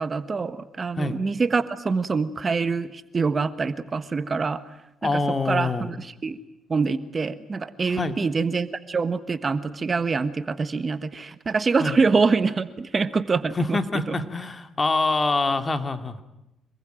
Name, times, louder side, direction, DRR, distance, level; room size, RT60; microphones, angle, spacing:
voice 1, 0.0-4.6 5.0-6.4 6.7-13.8 14.1-14.2, right 4 dB, 35° right, 13 dB, 1.4 m, -25 dB
voice 2, 5.0-5.9 8.0-8.2 11.8-12.0 13.5-16.2, left 3 dB, 30° left, 10 dB, 2.4 m, -25 dB
26.5 x 21.0 x 9.1 m, 0.91 s
cardioid pair, 90°, 0 cm